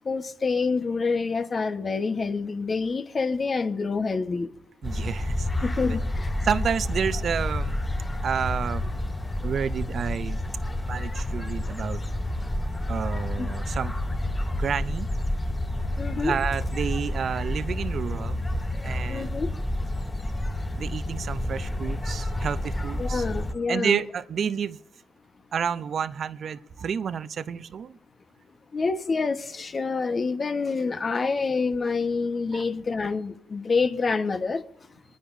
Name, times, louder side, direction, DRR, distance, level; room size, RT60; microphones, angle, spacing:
voice 1, 0.0-4.5 5.6-6.3 13.4-13.5 16.0-16.4 19.1-19.5 23.0-24.0 28.7-34.6, left 4 dB, 45° left, 1.2 m, -27 dB
sound 1, 4.8-23.5, left 1 dB, 20° left, 3.3 m, -29 dB
voice 2, 4.8-5.5 6.4-7.8 8.2-8.9 9.4-10.4 10.9-12.0 12.9-13.9 14.5-15.1 16.1-18.4 18.8-19.3 20.8-23.3 23.7-24.8 25.5-28.0 32.5-32.6, right 7 dB, 60° right, 0.6 m, -30 dB
26.5 x 10.0 x 2.7 m
supercardioid pair, 60°, 0 cm